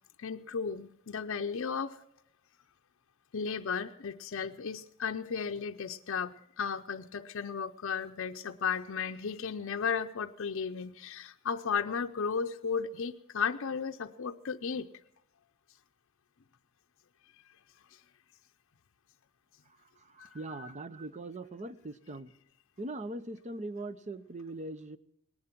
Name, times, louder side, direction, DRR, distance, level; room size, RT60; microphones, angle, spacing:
voice 1, 0.2-2.0 3.3-14.9 17.9-18.0 20.2-20.3, left 6 dB, 65° left, 4 dB, 0.6 m, -34 dB
voice 2, 19.7-22.3 22.8-25.0, right 2 dB, 35° right, 14 dB, 0.7 m, -41 dB
19.0 x 11.5 x 5.9 m, 0.75 s
head